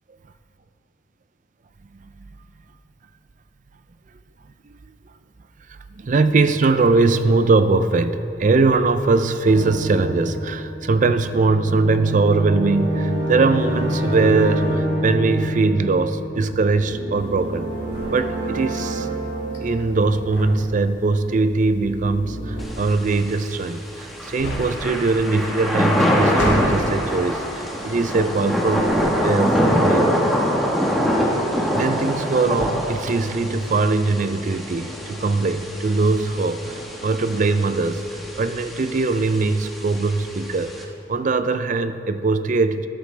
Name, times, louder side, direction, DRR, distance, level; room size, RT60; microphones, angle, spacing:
voice 1, 6.0-17.7 18.1-19.1 19.6-28.9 29.2-30.1 31.7-42.9, right 3 dB, 40° right, 11 dB, 0.4 m, -21 dB
sound 1, 9.4-21.1 21.6-22.6, equal, 65° right, 2.5 m, -28 dB
sound 2, 17.1-28.3 28.6-29.5, equal, 70° left, 2.3 m, -35 dB
Thunder / Rain, 22.6-40.8, equal, ahead, 1.1 m, -24 dB
13.0 x 11.5 x 3.3 m, 2.9 s
head